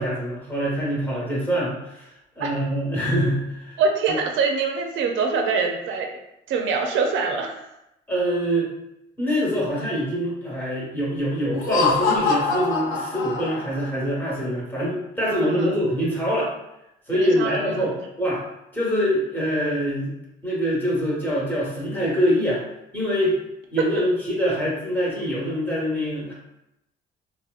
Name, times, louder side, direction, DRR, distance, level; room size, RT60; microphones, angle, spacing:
voice 1, 0.0-2.1 2.4-3.8 4.1-4.2 8.1-8.7 9.2-16.5 17.1-18.4 18.7-20.1 20.4-22.6 22.9-23.4 23.7-26.3, equal, 10° left, -6 dB, 1.1 m, -24 dB
voice 2, 3.8-6.1 6.5-7.7 15.3-15.7 17.1-17.9, right 4 dB, 75° right, 3 dB, 0.4 m, -24 dB
Laughter, 11.5-13.9, left 3 dB, 85° left, 0.5 m, -24 dB
2.7 x 2.1 x 2.3 m, 0.86 s
cardioid pair, 90°, 20 cm